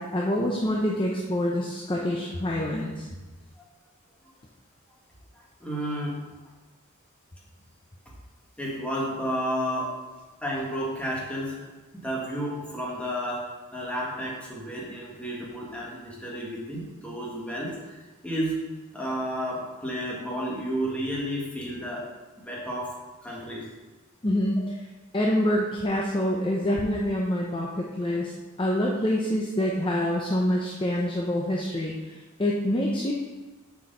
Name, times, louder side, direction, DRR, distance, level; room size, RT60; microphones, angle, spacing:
voice 1, 0.0-3.1 24.2-24.7 25.1-28.3 28.6-31.9 32.4-33.1, left 1 dB, 25° left, -2 dB, 0.7 m, -26 dB
voice 2, 5.6-6.2 8.6-9.9 10.4-11.6 11.9-13.4 13.7-18.6 18.9-22.1 22.4-22.9 23.2-23.6, equal, 5° left, -5 dB, 1.7 m, -31 dB
7.5 x 4.5 x 5.5 m, 1.2 s
head